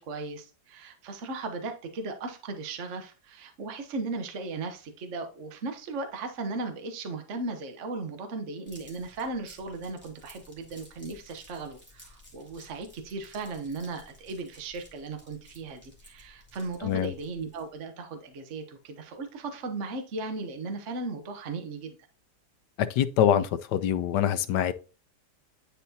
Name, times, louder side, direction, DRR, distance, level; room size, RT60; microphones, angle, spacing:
voice 1, 0.0-22.0, right 3 dB, 50° right, 1.2 m, -37 dB
sound 1, 8.7-17.8, left 1 dB, 5° right, 2.2 m, -55 dB
voice 2, 16.8-17.1 22.8-24.7, left 10 dB, 85° left, 1.2 m, -25 dB
10.0 x 4.1 x 2.7 m
omnidirectional pair, 1.8 m